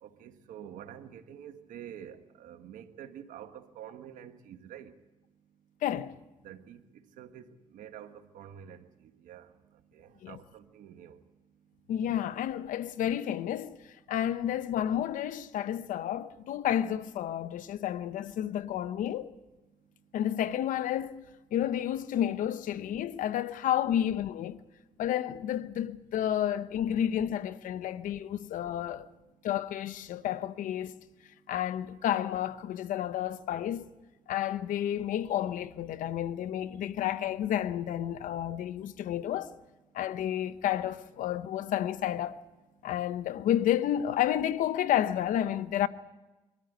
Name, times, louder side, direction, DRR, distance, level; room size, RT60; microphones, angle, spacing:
voice 1, 0.0-4.9 6.4-6.8 7.2-7.5 7.7-9.5 9.9-11.2, right 9 dB, 90° right, 1.4 m, -47 dB
voice 2, 5.8-6.2 10.2-10.4 11.9-13.7 14.1-19.3 20.1-21.2 21.5-24.6 25.0-29.1 29.4-31.0 31.5-33.9 34.3-39.5 39.9-42.4 42.8-45.9, left 11 dB, 85° left, 0.9 m, -31 dB
23.5 x 13.5 x 9.3 m
supercardioid pair, 60°, 13 cm